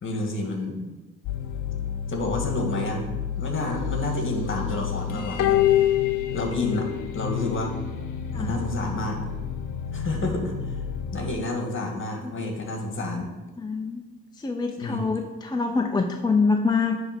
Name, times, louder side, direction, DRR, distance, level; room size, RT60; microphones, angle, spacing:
voice 1, 0.0-0.9 2.1-3.1 3.4-5.8 6.3-7.7 8.3-9.2 9.9-10.7 11.1-13.3 14.8-15.0, left 2 dB, 40° left, 3 dB, 1.7 m, -29 dB
sound 1, 1.2-11.3, left 6 dB, 90° left, 0.8 m, -32 dB
sound 2, 5.4-7.0 7.3-7.4, left 14 dB, 60° left, 0.5 m, -22 dB
voice 2, 13.6-14.0 14.4-17.0, left 4 dB, 15° left, 4 dB, 0.5 m, -25 dB
10.0 x 3.5 x 5.8 m, 1.2 s
cardioid pair, 90°, 30 cm